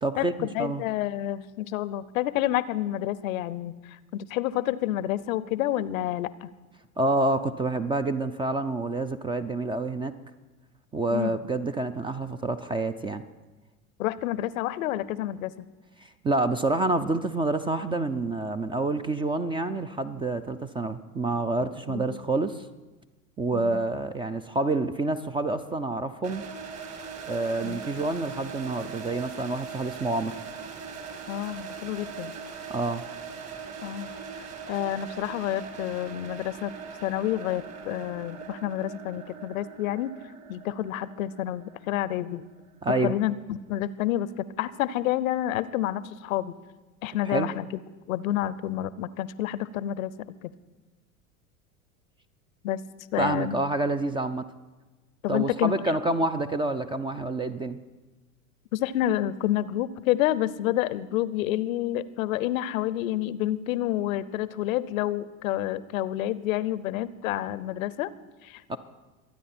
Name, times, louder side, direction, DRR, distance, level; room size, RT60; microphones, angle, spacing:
voice 1, 0.0-0.8 7.0-10.1 10.9-13.2 16.2-22.7 23.4-26.4 27.3-30.4 32.7-33.0 42.8-43.1 47.2-47.5 53.2-54.5 55.3-57.8 68.7-68.8, right 2 dB, 15° right, 10 dB, 0.4 m, -28 dB
voice 2, 0.5-6.5 11.1-11.4 14.0-15.7 21.9-22.1 23.5-23.8 27.6-27.8 31.3-32.3 33.8-34.1 34.7-36.7 37.0-40.1 40.5-42.4 43.0-46.5 47.0-47.6 48.1-50.1 52.6-52.8 53.1-53.6 55.2-55.8 58.7-68.1 68.4-68.8, left 13 dB, 70° left, 18 dB, 0.7 m, -29 dB
sound 1, 26.2-43.1, right 5 dB, 35° right, 1.9 m, -41 dB
24.0 x 9.2 x 4.3 m, 1.2 s
hypercardioid pair, 90°, 43 cm